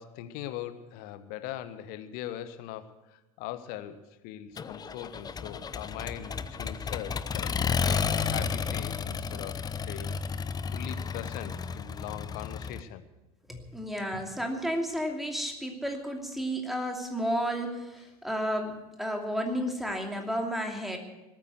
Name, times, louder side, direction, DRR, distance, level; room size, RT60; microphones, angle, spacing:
voice 1, 0.0-10.2 10.7-13.0, left 11 dB, 50° left, 11 dB, 1.2 m, -41 dB
Accelerating revving vroom, 4.6-12.8, left 6 dB, 20° left, 0.8 m, -32 dB
voice 2, 13.5-21.0, equal, ahead, 3 dB, 2.7 m, -32 dB
19.5 x 9.0 x 8.1 m, 1.0 s
figure-of-eight pair, 75°, 19 cm